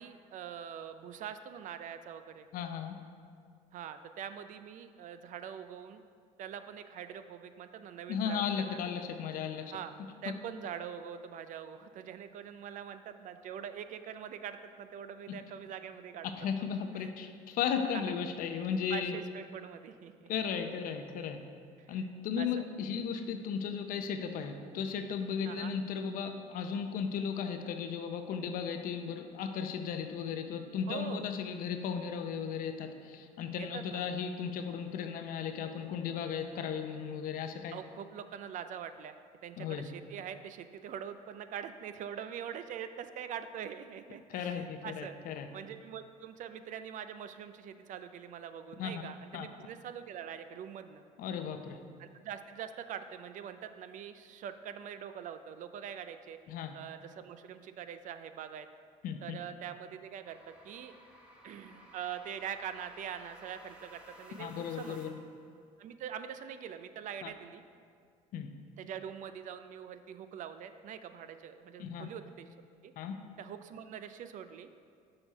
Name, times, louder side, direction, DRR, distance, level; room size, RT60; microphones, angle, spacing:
voice 1, 0.0-2.5 3.7-6.0 6.4-8.8 9.7-9.9 10.2-16.3 17.0-17.1 17.9-18.2 18.9-20.3 21.8-22.0 22.4-22.6 25.4-25.7 30.9-31.3 33.6-34.0 37.7-45.1 45.5-51.0 52.0-56.4 56.7-58.7 59.2-60.9 61.4-65.0 65.8-67.6 68.8-72.5 72.8-72.9 73.4-74.7, right 8 dB, 55° right, 10 dB, 0.4 m, -43 dB
voice 2, 2.5-3.0 8.1-9.7 16.4-19.2 20.3-21.4 21.9-37.7 39.6-39.8 44.3-45.5 48.8-48.9 49.3-49.5 51.2-51.8 56.5-56.8 59.0-59.2 64.4-65.1 67.2-67.3 68.3-68.5 71.8-72.1 73.0-73.2, left 7 dB, 60° left, 6 dB, 0.6 m, -35 dB
sound 1, 60.2-65.4, equal, 5° right, 1.1 m, -56 dB
6.4 x 4.3 x 5.5 m, 2.2 s
supercardioid pair, 90°, 16 cm